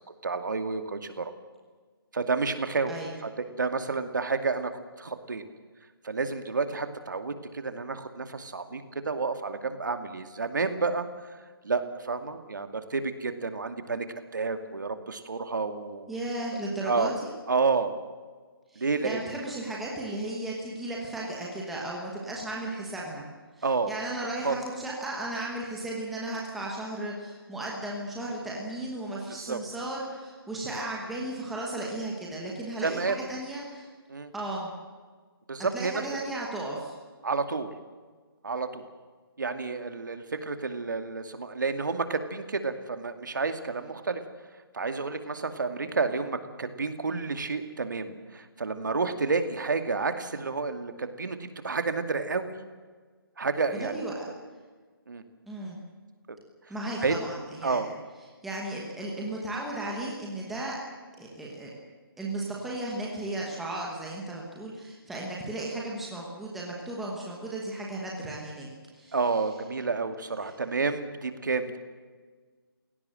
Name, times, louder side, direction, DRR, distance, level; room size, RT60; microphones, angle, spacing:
voice 1, 0.2-1.3 2.1-2.9 3.2-4.7 5.0-5.4 6.0-11.1 11.6-16.1 16.9-17.1 17.5-17.9 18.8-19.4 23.6-23.9 24.4-24.6 29.4-29.6 32.8-33.2 34.1-34.3 35.5-36.0 37.2-37.7 38.4-38.8 39.4-44.2 44.7-51.4 51.6-52.5 53.4-53.9 55.1-55.2 56.3-56.4 57.0-57.2 57.6-57.9 69.1-71.8, right 4 dB, 55° right, 8 dB, 2.4 m, -30 dB
voice 2, 2.9-3.2 16.1-17.3 18.7-23.2 23.6-33.9 34.3-34.7 35.7-36.9 53.8-54.3 55.5-55.8 56.7-57.9 58.4-60.8 61.2-61.7 62.2-68.7 68.9-69.2 70.4-70.5, right 1 dB, ahead, -4 dB, 1.2 m, -35 dB
28.0 x 17.5 x 7.8 m, 1.5 s
hypercardioid pair, 180°, 12 cm